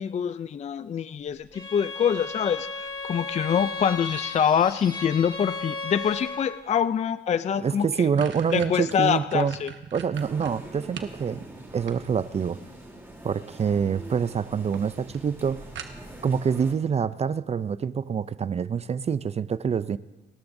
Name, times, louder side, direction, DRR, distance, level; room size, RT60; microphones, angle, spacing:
voice 1, 0.0-8.1 8.5-9.7, left 8 dB, 35° left, 13 dB, 0.4 m, -25 dB
Bowed string instrument, 1.5-6.7, left 4 dB, 20° left, 1.7 m, -35 dB
sound 1, 7.3-7.4 7.7-11.2 11.6-12.4 13.5-14.0 14.3-14.4 14.7-14.8 15.1-15.2 15.7-16.3, right 8 dB, 70° right, 1.2 m, -40 dB
voice 2, 7.6-9.5 9.9-11.5 11.7-12.6 13.2-15.7 16.2-20.0, right 6 dB, 35° right, 16 dB, 0.4 m, -26 dB
sound 2, 10.1-16.7, right 1 dB, 10° right, 3.3 m, -44 dB
30.0 x 13.0 x 2.7 m, 1.1 s
cardioid pair, 90°, 20 cm